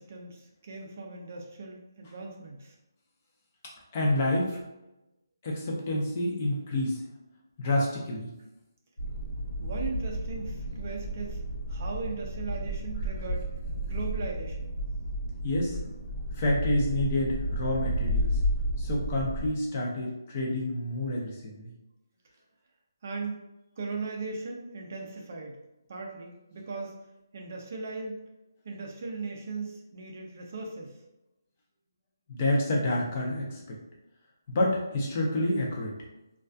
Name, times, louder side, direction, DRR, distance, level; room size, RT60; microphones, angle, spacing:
voice 1, 0.0-2.7 9.6-11.4 11.7-13.6 13.8-14.7 15.7-15.9 23.0-23.4 23.8-25.6 25.9-26.9 27.3-28.2 28.6-31.0, right 3 dB, 35° right, 0 dB, 0.4 m, -38 dB
voice 2, 3.9-4.6 5.4-7.0 7.6-8.3 15.4-15.8 16.3-18.3 18.8-21.7 32.3-33.6 34.5-36.0, left 1 dB, 25° left, -2 dB, 0.5 m, -28 dB
sound 1, 9.0-19.5, right 1 dB, 80° left, 0.7 m, -32 dB
2.2 x 2.2 x 2.5 m, 0.94 s
hypercardioid pair, 170°, 2 cm